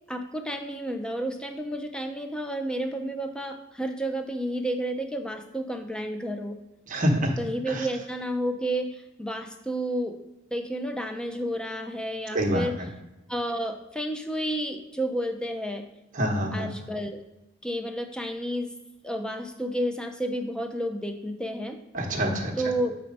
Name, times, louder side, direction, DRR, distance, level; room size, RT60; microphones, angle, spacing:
voice 1, 0.1-6.6 7.4-10.2 10.5-12.8 13.3-15.9 16.5-17.2 17.6-18.7 19.0-21.8 22.6-23.0, right 1 dB, 5° left, 6 dB, 0.4 m, -31 dB
voice 2, 6.9-7.3 7.7-7.9 12.3-12.7 16.1-16.7 21.9-22.5, equal, 40° right, 2 dB, 0.9 m, -26 dB
5.0 x 4.5 x 5.3 m, 1.0 s
head